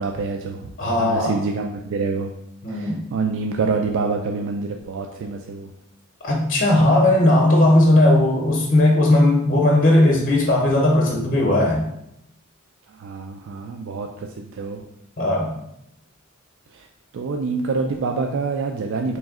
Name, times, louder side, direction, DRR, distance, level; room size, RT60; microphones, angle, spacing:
voice 1, 0.0-0.7 1.0-2.3 2.7-5.7 12.9-14.8 16.7-16.9 17.1-19.2, right 4 dB, 60° right, 3 dB, 0.3 m, -26 dB
voice 2, 0.8-1.4 2.6-3.0 6.2-11.9 15.2-15.6, left 1 dB, 40° left, -1 dB, 0.7 m, -17 dB
3.4 x 3.1 x 3.6 m, 0.79 s
head